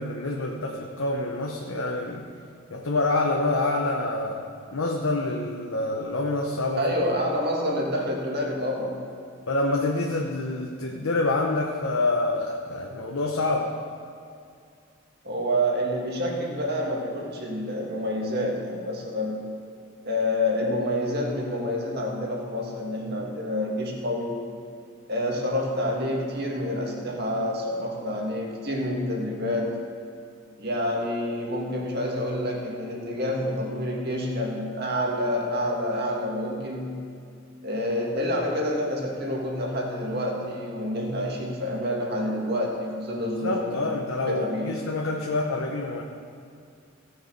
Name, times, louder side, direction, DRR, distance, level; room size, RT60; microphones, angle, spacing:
voice 1, 0.0-2.3 2.7-6.8 9.5-13.8 43.4-46.0, left 2 dB, 80° left, 1 dB, 0.8 m, -27 dB
voice 2, 6.8-9.0 15.2-19.5 20.0-24.4 25.1-29.8 30.6-37.0 37.6-43.9 44.3-44.8, left 1 dB, 55° right, -1 dB, 1.9 m, -28 dB
16.5 x 6.4 x 5.3 m, 2.4 s
head